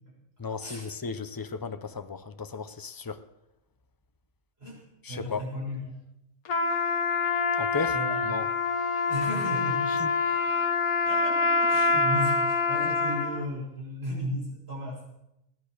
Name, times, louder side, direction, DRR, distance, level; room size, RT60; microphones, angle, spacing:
voice 1, 0.4-3.2 5.0-5.5 7.6-8.5 9.9-10.1 11.7-12.1, left 4 dB, 35° left, 10 dB, 0.3 m, -35 dB
voice 2, 4.6-6.0 7.9-8.2 9.1-10.0 11.1-15.0, left 1 dB, 40° right, -5 dB, 7.0 m, -35 dB
Trumpet, 6.5-13.5, left 4 dB, 80° left, 1.5 m, -26 dB
17.5 x 10.5 x 6.5 m, 0.86 s
omnidirectional pair, 1.5 m